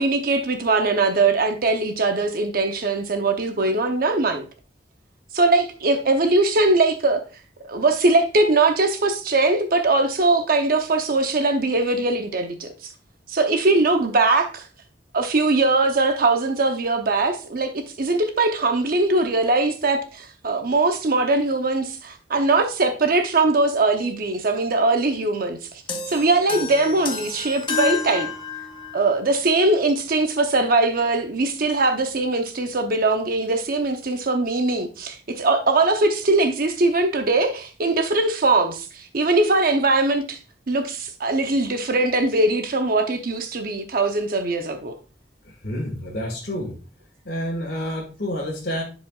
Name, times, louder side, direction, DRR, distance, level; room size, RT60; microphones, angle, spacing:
voice 1, 0.0-4.5 5.3-7.2 7.7-12.9 13.3-14.7 15.1-25.6 26.1-28.3 28.9-40.4 40.7-44.9, right 2 dB, 55° right, 0.8 m, -21 dB
sound 1, 25.9-29.1, left 5 dB, 30° left, 1.0 m, -30 dB
voice 2, 45.5-46.8 47.3-48.8, equal, 65° left, 1.8 m, -29 dB
11.0 x 5.0 x 2.4 m
head